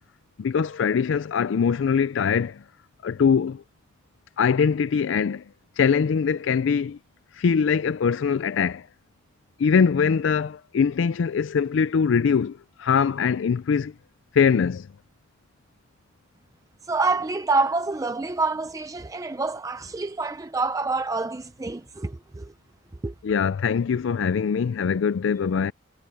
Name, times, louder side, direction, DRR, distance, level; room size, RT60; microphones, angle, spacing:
voice 1, 0.4-2.6 3.0-3.6 4.4-5.4 5.8-7.0 7.3-8.9 9.6-13.9 14.3-14.9 23.2-25.7, left 6 dB, 70° left, 0.4 m, -22 dB
voice 2, 16.9-22.5 23.0-23.1, right 3 dB, 15° right, 0.4 m, -27 dB
head